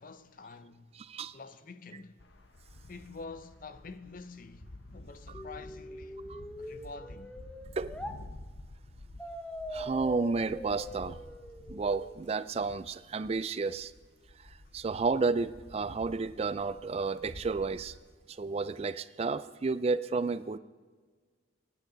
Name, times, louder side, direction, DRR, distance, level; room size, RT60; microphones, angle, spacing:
voice 1, 0.0-0.9 1.3-2.1 2.9-6.2 6.6-7.4, left 4 dB, 45° left, 0.6 m, -47 dB
voice 2, 1.0-1.4 6.3-6.4 7.8-7.9 9.7-11.2 11.7-13.9 14.4-17.9 18.3-20.6, right 4 dB, 30° right, 0.4 m, -31 dB
sound 1, 2.2-18.2, left 1 dB, 70° left, 1.0 m, -51 dB
sound 2, 5.3-8.2 9.2-12.2, equal, 5° left, 0.7 m, -43 dB
24.5 x 10.0 x 3.9 m
head